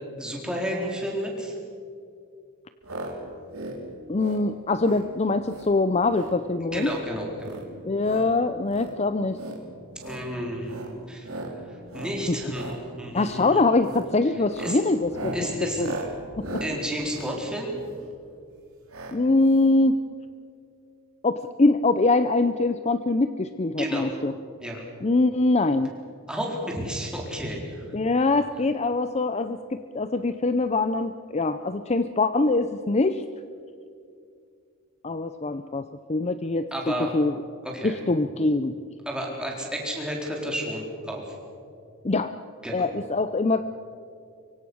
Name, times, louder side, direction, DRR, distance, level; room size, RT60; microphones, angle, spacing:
voice 1, 0.2-1.6 6.6-7.6 10.0-10.8 11.1-11.3 11.5-13.6 14.6-14.8 15.3-15.8 16.6-17.7 23.8-24.1 24.6-24.8 26.3-27.9 36.7-37.1 37.6-38.0 39.1-41.4 42.6-42.9, equal, 5° right, -1 dB, 4.3 m, -31 dB
sound 1, 2.8-3.1 3.4-3.8 4.1-4.4 4.8-5.1 5.4-5.7 6.0-6.4 6.7-7.0 7.4-8.3 8.7-8.9 9.3-9.6 9.9-10.3 10.6-10.9 11.2-11.5 11.9-12.2 12.5-12.8 13.1-13.4 13.8-14.1 14.4-18.1 18.9-19.2 19.4-19.5 19.7-19.8, right 1 dB, 80° right, 3.9 m, -37 dB
voice 2, 4.1-6.9 7.8-9.4 12.3-12.4 13.1-15.3 15.6-15.9 16.4-16.6 19.1-20.0 21.2-24.3 25.0-25.9 27.9-33.2 35.0-36.7 37.0-37.3 37.8-38.7 42.0-42.3 42.7-43.6, left 2 dB, 30° left, 11 dB, 0.6 m, -23 dB
24.5 x 24.0 x 6.3 m, 2.4 s
head